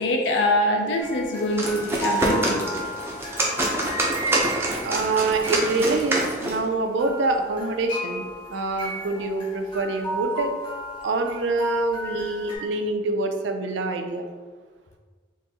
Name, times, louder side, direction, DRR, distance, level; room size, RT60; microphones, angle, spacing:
voice 1, 0.0-2.7 11.7-11.8, left 1 dB, 80° left, 2 dB, 0.4 m, -24 dB
sound 1, 1.0-6.7 7.0-12.6, right 1 dB, 25° left, 0.9 m, -34 dB
Soldier running, 1.4-6.7, right 1 dB, 15° right, 0.4 m, -26 dB
voice 2, 4.8-8.2 8.5-10.5 11.0-14.3, right 3 dB, 80° right, 5 dB, 0.4 m, -25 dB
3.8 x 2.6 x 2.7 m, 1.5 s
head